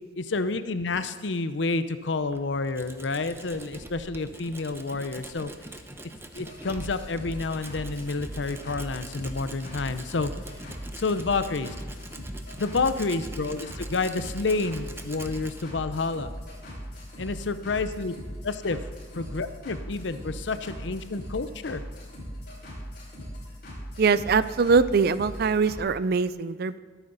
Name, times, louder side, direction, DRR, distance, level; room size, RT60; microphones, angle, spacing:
voice 1, 0.2-5.5 6.3-10.3 10.9-11.7 12.6-16.3 17.2-18.1 18.4-18.8 19.1-21.8, left 3 dB, 75° left, 11 dB, 0.7 m, -29 dB
Tools, 2.1-17.4, right 2 dB, 15° right, 0.9 m, -44 dB
sound 1, 6.4-25.8, equal, 55° left, 5.5 m, -40 dB
voice 2, 24.0-26.8, right 5 dB, 55° right, 15 dB, 0.5 m, -22 dB
22.0 x 9.1 x 4.0 m, 1.4 s
head